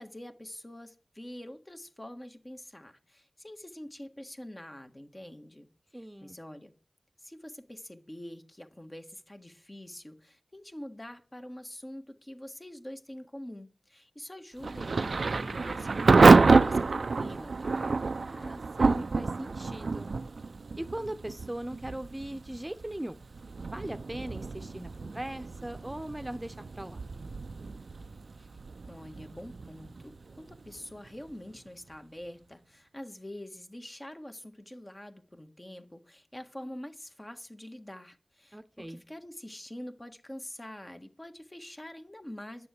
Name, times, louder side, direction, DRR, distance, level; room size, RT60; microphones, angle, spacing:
voice 1, 0.0-5.7 5.9-6.7 7.2-18.0 28.4-28.5 28.9-42.7, left 1 dB, 25° left, 1.6 m, -45 dB
voice 2, 5.9-6.4 18.2-20.1 20.8-23.2 23.6-27.0 38.5-39.0, right 1 dB, 20° right, 0.9 m, -39 dB
Thunder / Rain, 14.6-31.3, right 4 dB, 85° right, 0.5 m, -27 dB
10.5 x 6.9 x 8.3 m
wide cardioid pair, 45°, 0 cm